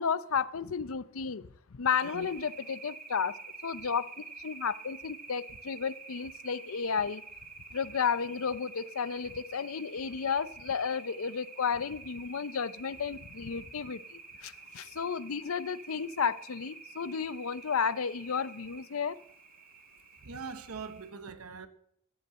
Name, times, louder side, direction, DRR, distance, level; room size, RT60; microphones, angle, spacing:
voice 1, 0.0-7.2 7.7-19.2, left 6 dB, 75° left, 0.6 m, -33 dB
sound 1, 1.9-21.1, right 4 dB, 40° right, 2.2 m, -48 dB
voice 2, 20.2-21.7, right 5 dB, 85° right, 0.9 m, -42 dB
13.0 x 8.4 x 7.4 m
head